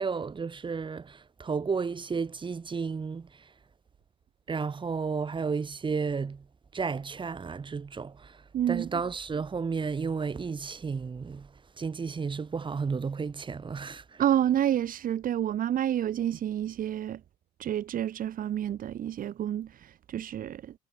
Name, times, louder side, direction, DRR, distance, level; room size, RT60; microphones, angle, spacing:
voice 1, 0.0-3.3 4.5-6.4 6.7-8.4 8.7-11.5 11.8-14.2, right 5 dB, 30° right, 6.1 m, -32 dB
voice 2, 8.5-8.9 14.2-17.2 17.6-20.7, right 11 dB, 55° right, 2.2 m, -29 dB
cardioid pair, 110°, 17 cm